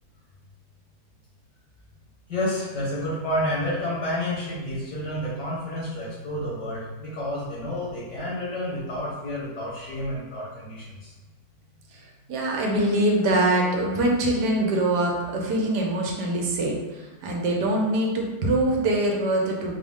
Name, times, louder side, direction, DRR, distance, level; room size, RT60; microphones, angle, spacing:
voice 1, 2.3-11.1, left 1 dB, 75° left, -8 dB, 2.1 m, -30 dB
voice 2, 12.3-19.8, right 1 dB, 80° right, -1 dB, 1.3 m, -23 dB
4.8 x 2.0 x 3.5 m, 1.2 s
omnidirectional pair, 1.8 m